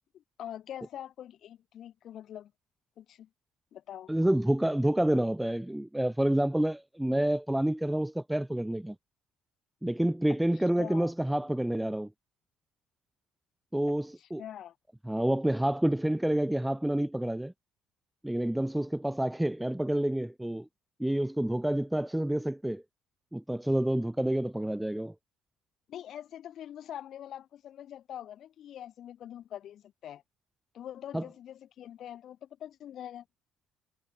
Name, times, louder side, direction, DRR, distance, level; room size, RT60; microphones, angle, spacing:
voice 1, 0.1-2.5 3.0-3.3 3.7-4.1 10.8-11.1 13.9-14.7 25.9-30.2 30.7-33.2, left 10 dB, 50° left, 4.8 m, -44 dB
voice 2, 4.1-8.9 9.8-12.1 13.7-14.4 15.1-17.5 18.2-20.7 21.0-22.8 23.3-25.1 31.1-31.2, right 1 dB, 5° right, 0.9 m, -28 dB
cardioid pair, 135°, 0 cm